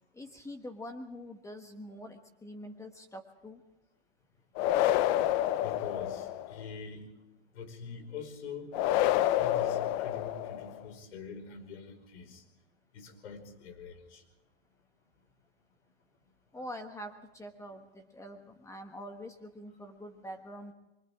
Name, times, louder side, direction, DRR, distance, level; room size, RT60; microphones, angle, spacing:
voice 1, 0.1-3.6 16.5-20.7, equal, 10° left, 5 dB, 1.4 m, -45 dB
sound 1, 4.6-6.6 8.7-10.8, left 13 dB, 40° left, 0.7 m, -28 dB
voice 2, 5.6-7.1 7.5-8.7 9.3-12.4 12.9-14.2 16.6-16.7, left 5 dB, 90° left, 6 dB, 5.3 m, -44 dB
29.5 x 24.0 x 3.7 m, 0.99 s
supercardioid pair, 145°, 33 cm